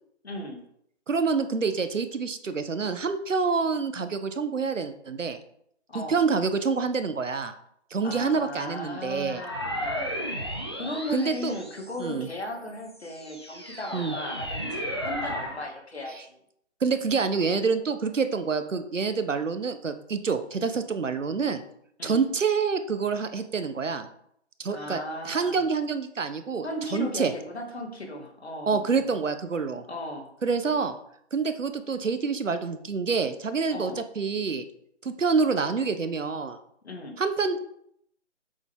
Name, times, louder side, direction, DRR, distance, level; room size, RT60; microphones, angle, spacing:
voice 1, 0.2-0.6 5.9-6.2 8.0-10.1 10.8-16.4 22.0-22.2 24.7-25.6 26.6-29.2 29.9-30.3 33.7-34.0 36.8-37.2, left 1 dB, 60° left, 2 dB, 2.4 m, -36 dB
voice 2, 1.1-5.4 5.9-7.5 7.9-9.4 11.1-11.5 12.0-12.3 13.9-14.2 16.8-21.6 22.0-24.1 24.6-26.7 26.9-27.3 28.7-29.8 30.4-31.0 31.3-34.6 35.0-36.6 37.2-37.6, right 5 dB, 85° right, 9 dB, 1.2 m, -27 dB
sound 1, 9.3-12.2 12.8-15.6, equal, 20° left, 0.7 m, -34 dB
8.0 x 6.7 x 3.7 m, 0.71 s
hypercardioid pair, 175°, 37 cm